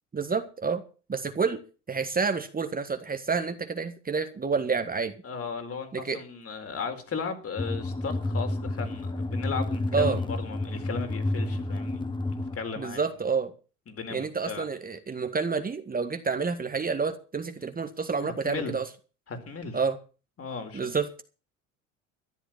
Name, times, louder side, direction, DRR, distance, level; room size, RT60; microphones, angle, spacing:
voice 1, 0.1-0.8 1.1-1.6 1.9-5.1 5.9-6.2 9.9-10.2 12.8-13.5 14.1-18.9 19.7-20.0 20.7-21.2, right 5 dB, 25° right, 8 dB, 1.7 m, -29 dB
voice 2, 5.2-13.0 13.9-14.7 18.2-18.7 19.3-19.8 20.4-20.8, left 5 dB, 35° left, 7 dB, 4.2 m, -36 dB
sound 1, 7.6-12.6, left 2 dB, 10° left, 1.7 m, -30 dB
14.0 x 11.0 x 5.8 m, 0.36 s
hypercardioid pair, 70°, 38 cm